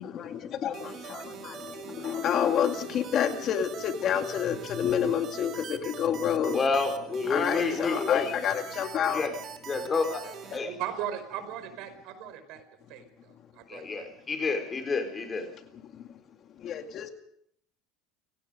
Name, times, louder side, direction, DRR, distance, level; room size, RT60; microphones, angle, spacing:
voice 1, 0.0-6.6 7.3-9.2 15.9-16.0 16.6-17.1, left 8 dB, 45° left, 6 dB, 2.2 m, -29 dB
sound 1, 0.7-10.6, right 7 dB, 40° right, 2.9 m, -43 dB
voice 2, 6.5-8.3 9.1-9.3 9.6-10.7 13.7-15.5, left 4 dB, 25° left, 6 dB, 4.6 m, -29 dB
voice 3, 10.6-12.6 12.9-14.1, right 10 dB, 65° right, 9 dB, 5.0 m, -38 dB
29.5 x 18.0 x 5.3 m, 0.71 s
supercardioid pair, 125°, 0 cm